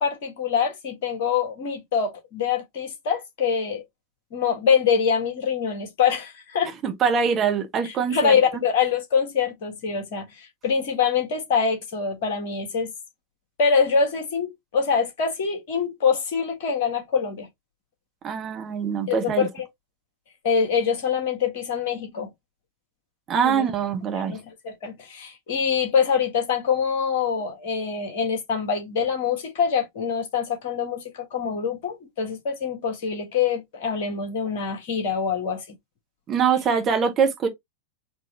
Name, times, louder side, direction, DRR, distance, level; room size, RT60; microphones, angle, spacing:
voice 1, 0.0-3.8 4.3-6.7 7.8-12.9 13.6-17.5 19.1-19.7 20.4-22.3 23.4-23.7 24.1-35.6, left 6 dB, 50° left, 1.7 m, -24 dB
voice 2, 6.8-8.3 18.2-19.5 23.3-24.3 36.3-37.5, right 6 dB, 30° right, 1.2 m, -23 dB
4.5 x 3.0 x 3.1 m
figure-of-eight pair, 90°, 0 cm